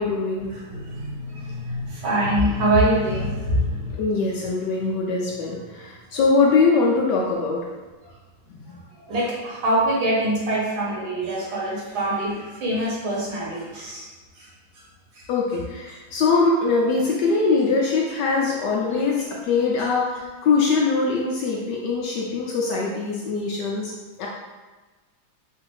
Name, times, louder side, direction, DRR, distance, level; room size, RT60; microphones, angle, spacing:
voice 1, 0.0-0.5 4.0-7.6 8.5-8.6 15.3-23.9 24.2-24.3, left 4 dB, 70° left, -2 dB, 1.1 m, -22 dB
voice 2, 0.5-4.0 9.1-14.1 14.4-14.5 15.1-15.2 18.3-18.5 18.9-19.0, right 1 dB, 75° right, -4 dB, 1.9 m, -24 dB
4.2 x 2.5 x 4.6 m, 1.2 s
omnidirectional pair, 2.3 m